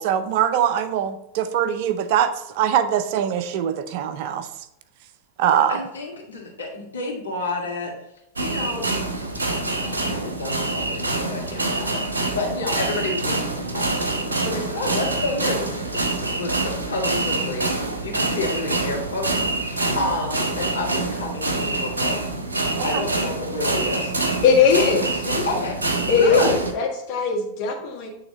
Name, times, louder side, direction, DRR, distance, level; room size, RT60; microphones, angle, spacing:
voice 1, 0.0-4.5 5.4-5.8 22.8-23.1, right 9 dB, 50° right, 11 dB, 0.5 m, -22 dB
voice 2, 5.7-7.9 8.4-8.9 9.2-9.3 9.8-13.9 14.4-22.2 22.8-24.1 25.5-25.8 26.2-26.5, left 2 dB, 75° left, -2 dB, 1.8 m, -30 dB
sound 1, 8.4-26.7, right 2 dB, 75° right, 0.9 m, -26 dB
voice 3, 24.4-25.6 26.1-28.1, left 5 dB, 45° left, -1 dB, 1.8 m, -20 dB
8.9 x 3.5 x 4.0 m, 0.82 s
figure-of-eight pair, 90°, 0 cm